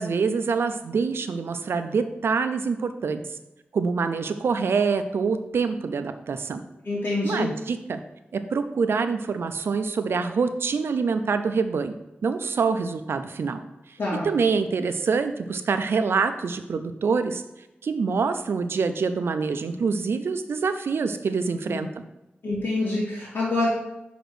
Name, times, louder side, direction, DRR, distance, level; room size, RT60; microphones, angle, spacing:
voice 1, 0.0-3.4 3.7-6.6 7.2-8.0 8.3-11.9 12.2-13.6 14.2-17.4 17.8-21.9, right 5 dB, 80° right, 9 dB, 0.6 m, -25 dB
voice 2, 6.8-7.5 14.0-14.3 21.7-21.8 22.4-23.7, left 2 dB, 65° left, -12 dB, 2.9 m, -26 dB
5.1 x 5.0 x 6.2 m, 0.92 s
wide cardioid pair, 85°, 4 cm